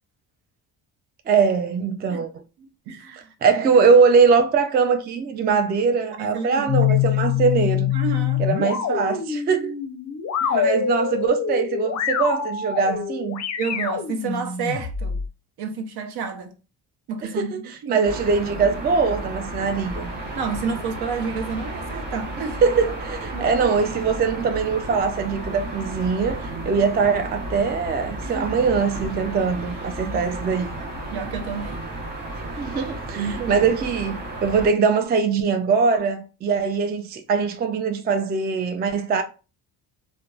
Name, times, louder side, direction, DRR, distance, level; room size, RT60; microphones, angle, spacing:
voice 1, 1.3-2.4 3.4-7.9 8.4-9.7 10.5-13.4 17.2-17.6 17.9-20.1 22.6-30.8 32.6-39.2, right 5 dB, 25° right, 0.3 m, -22 dB
voice 2, 2.6-3.3 6.2-7.0 7.9-8.4 10.4-10.7 13.6-15.2 15.6-16.5 17.1-18.1 20.3-22.6 23.3-23.9 28.2-28.6 30.1-30.3 31.1-31.9 33.2-33.7, right 5 dB, 65° right, 0.7 m, -30 dB
sound 1, 6.7-15.3, left 9 dB, 40° left, 0.5 m, -25 dB
sound 2, 18.1-34.7, right 1 dB, 50° right, 1.0 m, -33 dB
2.9 x 2.1 x 2.3 m
cardioid pair, 85°, 41 cm